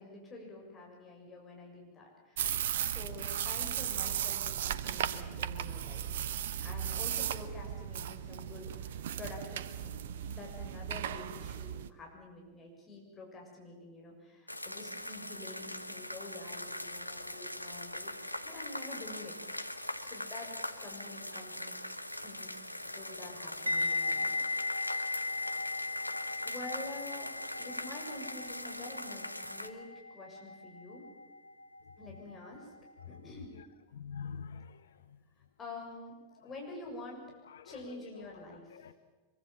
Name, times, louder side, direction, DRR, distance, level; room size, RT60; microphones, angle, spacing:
voice 1, 0.0-2.5 2.8-6.1 6.6-18.1 18.4-21.7 22.1-24.8 26.4-29.9 30.1-31.1 32.0-32.7 33.1-33.5 35.6-36.2 36.4-37.3 37.6-38.8, left 2 dB, 20° left, -1 dB, 7.1 m, -48 dB
sound 1, 2.4-11.9, right 10 dB, 60° right, 1.0 m, -36 dB
sound 2, 14.5-29.7, left 1 dB, 90° left, 1.0 m, -41 dB
sound 3, 23.7-32.6 32.9-33.2, left 3 dB, 85° right, 1.8 m, -37 dB
voice 2, 33.9-34.9 37.5-38.3 38.7-38.9, left 6 dB, 65° left, 12 dB, 0.9 m, -45 dB
24.0 x 23.0 x 7.5 m, 1.3 s
figure-of-eight pair, 90°, 0 cm